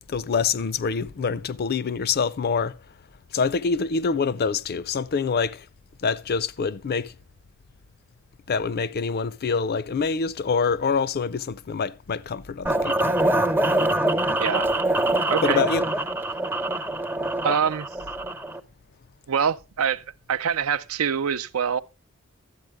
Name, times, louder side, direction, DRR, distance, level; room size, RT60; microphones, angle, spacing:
voice 1, 0.1-2.7 3.3-5.6 6.0-7.1 8.5-13.1 15.4-15.8, left 5 dB, 45° left, 0.4 m, -25 dB
sound 1, 12.7-18.6, right 1 dB, 10° right, 0.5 m, -24 dB
voice 2, 15.3-15.6 17.4-17.9 19.3-20.0 20.3-21.8, right 7 dB, 90° right, 0.5 m, -24 dB
12.0 x 8.5 x 3.4 m
head